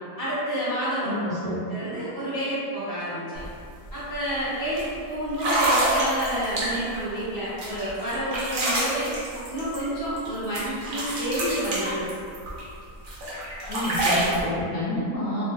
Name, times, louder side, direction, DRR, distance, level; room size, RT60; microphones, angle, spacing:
voice 1, 0.2-1.1 1.4-3.4 3.9-9.1 9.5-12.0, right 1 dB, 20° right, -11 dB, 0.6 m, -29 dB
voice 2, 1.0-1.6 13.7-15.4, left 1 dB, 65° left, -9 dB, 0.8 m, -29 dB
sound 1, 3.3-3.5 3.8-4.1 4.8-4.9 5.3-7.0 7.6-10.3 10.5-12.6 13.0-14.4, right 1 dB, 75° right, 0.4 m, -27 dB
2.6 x 2.2 x 3.7 m, 2.5 s
omnidirectional pair, 1.6 m